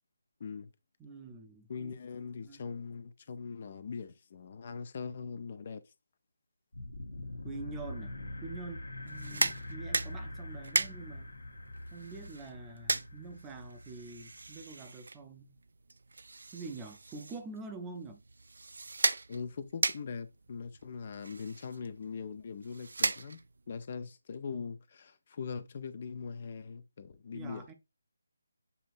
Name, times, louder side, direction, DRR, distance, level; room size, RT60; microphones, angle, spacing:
voice 1, 0.4-0.7 1.7-5.8 9.3-9.5 19.3-23.4 23.7-27.7, left 5 dB, 45° left, 0.5 m, -41 dB
voice 2, 1.0-1.9 2.4-2.7 7.4-11.3 11.9-15.6 16.5-18.2 27.3-27.7, right 4 dB, 15° right, 0.6 m, -46 dB
sound 1, 6.7-14.8, left 1 dB, 85° left, 1.2 m, -44 dB
tape measure, 9.0-23.7, right 3 dB, 70° right, 0.3 m, -37 dB
7.0 x 2.8 x 2.5 m
figure-of-eight pair, 155°, 0 cm